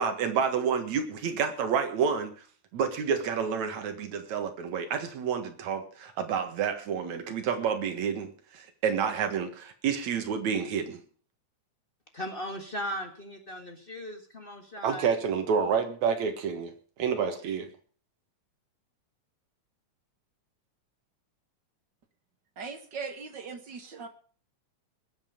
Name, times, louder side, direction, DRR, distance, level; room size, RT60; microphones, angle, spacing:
voice 1, 0.0-2.4 2.7-11.0 14.8-16.7 17.0-17.7, right 6 dB, 70° right, 7 dB, 3.0 m, -29 dB
voice 2, 12.1-15.1, equal, 30° left, 4 dB, 1.1 m, -37 dB
voice 3, 22.6-24.1, right 5 dB, 40° right, 6 dB, 1.9 m, -39 dB
20.5 x 8.1 x 5.2 m, 0.42 s
omnidirectional pair, 3.4 m